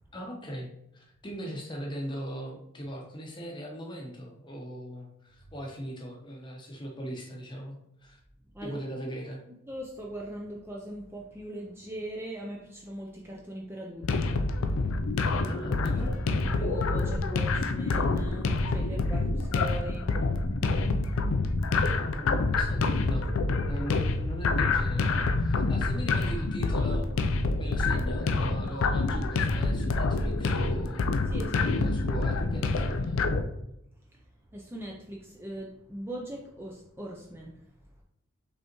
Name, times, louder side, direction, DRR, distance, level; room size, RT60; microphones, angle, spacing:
voice 1, 0.1-8.2 8.6-9.4 15.5-16.1 21.9-23.3 23.6-27.0 27.4-31.1 31.7-33.2, equal, 20° left, 0 dB, 0.7 m, -39 dB
voice 2, 9.7-14.4 16.0-20.1 31.3-31.8 34.1-34.2 34.5-37.7, equal, 10° right, -2 dB, 0.4 m, -40 dB
sound 1, 14.0-33.4, left 3 dB, 70° left, 0.4 m, -27 dB
5.2 x 3.4 x 2.9 m, 0.81 s
head